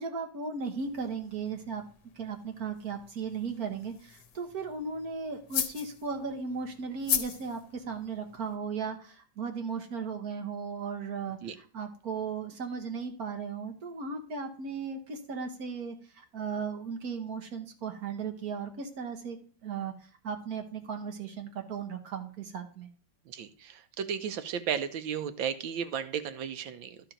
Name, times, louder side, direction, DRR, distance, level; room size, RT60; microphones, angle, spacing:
voice 1, 0.0-1.8 2.2-19.4 19.6-19.9 20.2-22.9, right 5 dB, 50° right, 5 dB, 1.6 m, -36 dB
sound 1, 0.7-8.6, left 9 dB, 70° left, 1.4 m, -39 dB
voice 2, 24.0-27.0, right 8 dB, 85° right, 10 dB, 1.5 m, -33 dB
12.5 x 4.5 x 5.1 m, 0.43 s
omnidirectional pair, 2.1 m